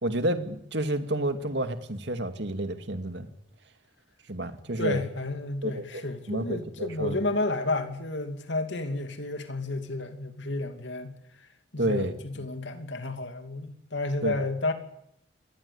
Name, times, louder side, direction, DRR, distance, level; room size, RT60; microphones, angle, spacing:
voice 1, 0.0-3.3 4.3-5.0 5.6-7.2 11.8-12.1 14.2-14.3, right 1 dB, 65° right, 2.4 m, -30 dB
voice 2, 4.8-11.1 11.7-14.7, left 2 dB, 70° left, 2.7 m, -31 dB
26.5 x 20.0 x 8.6 m
head